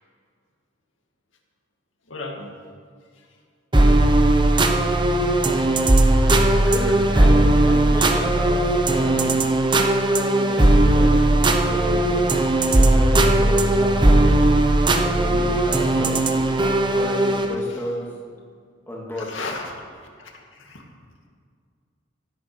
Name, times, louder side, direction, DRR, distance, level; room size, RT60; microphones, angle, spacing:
voice 1, 2.1-2.5 12.8-12.9 19.2-19.8 20.2-20.3 20.6-20.8, left 3 dB, 85° left, 1 dB, 2.3 m, -33 dB
sound 1, 3.7-17.6, right 1 dB, 25° right, 0.9 m, -18 dB
voice 2, 6.6-9.6 10.1-11.2 11.6-12.1 12.8-14.3 15.1-16.4 16.9-18.1 18.9-19.3, equal, 10° left, -3 dB, 2.5 m, -33 dB
16.5 x 10.0 x 6.3 m, 2.1 s
head